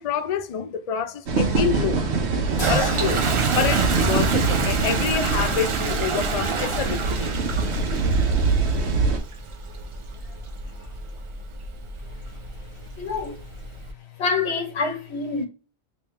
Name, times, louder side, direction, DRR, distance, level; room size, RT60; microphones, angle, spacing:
voice 1, 0.0-2.0 2.7-3.3 3.6-7.3, left 8 dB, 55° left, 0.4 m, -27 dB
sound 1, 1.3-9.2, right 4 dB, 80° right, 1.1 m, -23 dB
Toilet flush, 2.4-13.9, right 5 dB, 55° right, 0.3 m, -30 dB
sound 2, 2.6-6.9, left 3 dB, 35° left, 1.2 m, -37 dB
voice 2, 13.0-13.4 14.2-15.5, left 4 dB, 85° left, 1.2 m, -26 dB
3.1 x 3.1 x 3.2 m
omnidirectional pair, 1.1 m